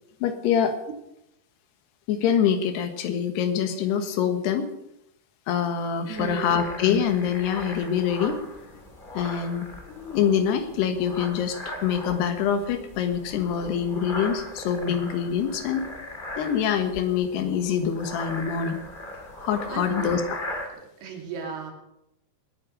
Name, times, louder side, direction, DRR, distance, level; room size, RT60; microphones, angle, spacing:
voice 1, 0.2-0.8 2.1-4.7 5.5-8.4 9.1-15.8 16.4-18.8 19.4-20.4, left 8 dB, 80° left, 8 dB, 3.4 m, -25 dB
sound 1, 6.1-20.7, left 1 dB, 15° left, 1.7 m, -39 dB
voice 2, 6.1-6.6 19.7-20.1 21.0-21.7, right 5 dB, 75° right, 2 dB, 4.6 m, -34 dB
19.5 x 9.9 x 6.6 m, 0.83 s
omnidirectional pair, 4.7 m